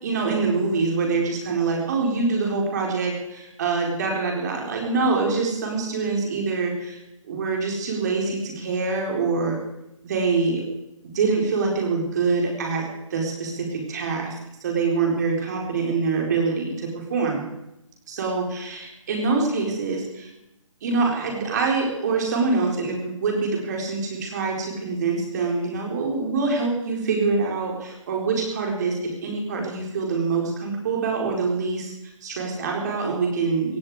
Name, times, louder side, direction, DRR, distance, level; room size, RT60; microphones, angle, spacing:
voice 1, 0.0-7.0 7.3-9.6 10.0-10.6 11.1-12.8 13.1-14.3 14.6-17.4 18.1-20.3 20.8-31.9 32.2-33.8, right 4 dB, 30° right, 0 dB, 4.3 m, -25 dB
17.0 x 16.5 x 5.0 m, 0.88 s
hypercardioid pair, 170°, 17 cm